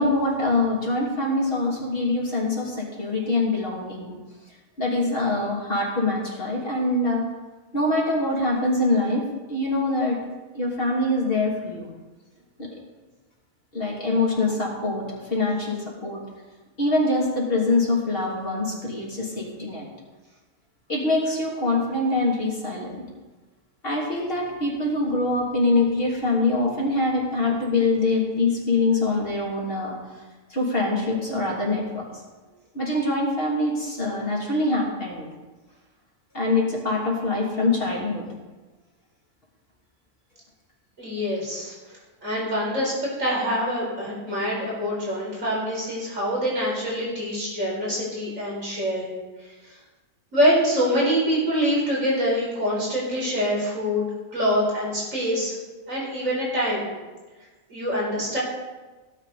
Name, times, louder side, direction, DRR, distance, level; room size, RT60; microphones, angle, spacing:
voice 1, 0.0-4.2 4.8-7.2 7.7-9.2 9.5-10.2 10.5-11.9 12.6-12.7 13.7-16.2 16.8-19.9 20.9-23.0 23.8-30.0 30.5-32.0 32.7-35.3 36.3-38.3, left 2 dB, 40° left, -3 dB, 3.3 m, -24 dB
voice 2, 41.0-41.7 42.2-42.9 43.2-49.2 50.3-55.5 55.9-56.9 57.7-58.4, equal, 70° right, -4 dB, 5.1 m, -25 dB
18.0 x 8.9 x 4.2 m, 1.2 s
omnidirectional pair, 1.4 m